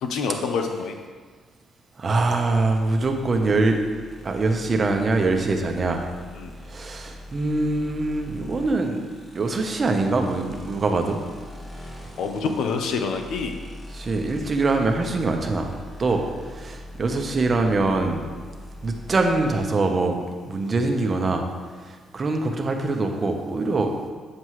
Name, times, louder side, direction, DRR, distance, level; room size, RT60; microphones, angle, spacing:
voice 1, 0.0-0.9 6.3-6.5 12.2-13.6, left 5 dB, 80° left, 5 dB, 0.8 m, -26 dB
voice 2, 2.0-3.8 4.2-6.1 6.7-9.0 9.3-11.2 13.9-15.7 16.0-18.2 18.8-21.4 21.8-23.9, right 3 dB, 35° right, 4 dB, 1.0 m, -23 dB
sound 1, 2.4-19.6, left 1 dB, 30° left, 2.1 m, -42 dB
8.6 x 7.5 x 3.2 m, 1.5 s
cardioid pair, 90°, 0 cm